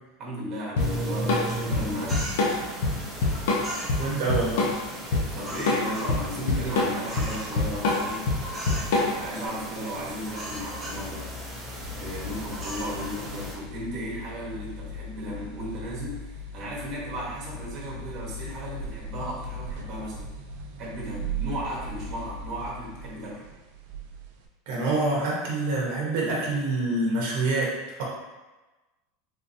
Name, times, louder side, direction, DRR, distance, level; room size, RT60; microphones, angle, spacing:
voice 1, 0.2-2.3 5.3-8.3 8.9-11.3 11.9-20.3 20.8-23.4, equal, 30° right, -5 dB, 1.0 m, -35 dB
Drum kit / Drum, 0.8-9.4, left 3 dB, 70° left, 0.7 m, -25 dB
sound 1, 0.8-13.5, right 1 dB, 10° right, 0.7 m, -36 dB
voice 2, 4.0-4.7 24.7-28.0, right 2 dB, 55° right, -3 dB, 0.9 m, -26 dB
sound 2, 11.8-24.5, right 1 dB, 70° right, 0.4 m, -38 dB
3.9 x 2.7 x 2.6 m, 1.1 s
supercardioid pair, 175°, 0 cm